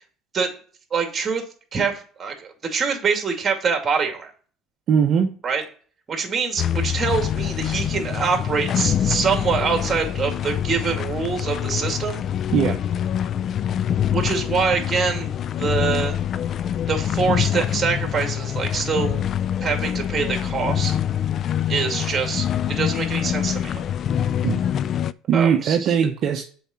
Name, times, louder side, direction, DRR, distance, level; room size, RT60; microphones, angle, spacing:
voice 1, 0.9-1.4 1.7-4.3 5.4-5.6 6.1-12.2 14.1-15.3 15.6-16.1 16.9-19.2 19.6-21.0 21.7-23.7 25.3-25.9, right 5 dB, 30° right, 4 dB, 2.2 m, -24 dB
voice 2, 4.9-5.3 12.5-12.8 24.4-24.6 25.3-26.4, right 7 dB, 55° right, 3 dB, 0.8 m, -20 dB
sound 1, 6.6-25.1, left 9 dB, 50° left, 0.3 m, -25 dB
7.0 x 4.8 x 4.3 m, 0.43 s
supercardioid pair, 90°, 0 cm